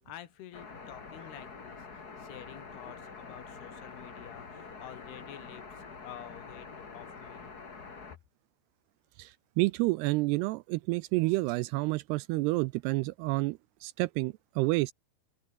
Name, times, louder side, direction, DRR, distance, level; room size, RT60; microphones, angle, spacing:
voice 1, 0.0-7.5 9.2-9.3, left 12 dB, 70° left, 3.5 m, -49 dB
sound 1, 0.5-8.2, left 4 dB, 30° left, 2.2 m, -46 dB
voice 2, 9.2-14.9, right 22 dB, 80° right, 2.4 m, -29 dB
open air
omnidirectional pair, 5.0 m